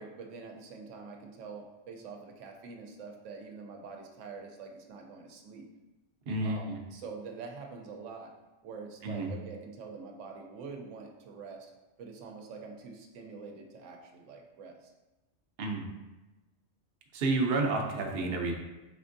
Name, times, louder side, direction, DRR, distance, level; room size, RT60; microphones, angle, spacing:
voice 1, 0.0-5.6 6.4-8.3 8.6-11.7 12.0-14.9, right 4 dB, 80° right, 2 dB, 0.9 m, -45 dB
voice 2, 6.3-6.8 9.0-9.3 15.6-15.9 17.1-18.5, right 3 dB, 55° right, 1 dB, 0.7 m, -30 dB
5.0 x 3.4 x 2.6 m, 1.1 s
omnidirectional pair, 1.2 m